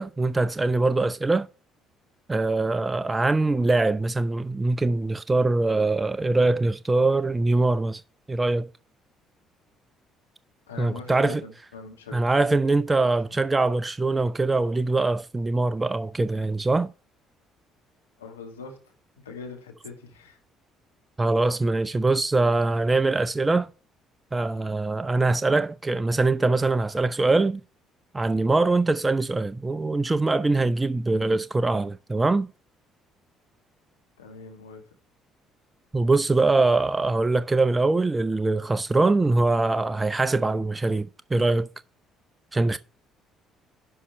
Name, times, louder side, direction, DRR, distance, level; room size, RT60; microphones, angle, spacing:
voice 1, 0.0-1.5 2.3-8.0 8.3-8.7 10.8-11.4 12.1-16.9 21.2-23.7 24.3-27.6 28.1-32.5 35.9-41.7 42.5-42.8, right 3 dB, 20° right, 0.5 m, -23 dB
voice 2, 10.7-12.2 18.2-18.9 19.2-20.4 34.2-34.8, left 4 dB, 90° left, 1.9 m, -42 dB
11.0 x 5.6 x 4.4 m
hypercardioid pair, 50°, 0 cm